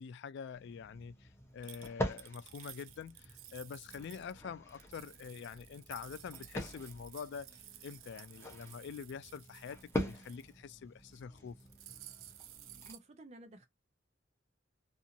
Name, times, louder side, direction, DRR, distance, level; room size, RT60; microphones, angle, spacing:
voice 1, 0.0-11.6, left 6 dB, 60° left, 0.3 m, -46 dB
sound 1, 0.5-12.9, equal, 15° left, 0.7 m, -44 dB
sound 2, 1.6-4.3 4.7-10.5 11.0-11.2 11.5-13.0, right 13 dB, 90° right, 0.4 m, -54 dB
voice 2, 12.9-13.7, right 1 dB, 35° right, 0.6 m, -53 dB
2.6 x 2.5 x 2.7 m
head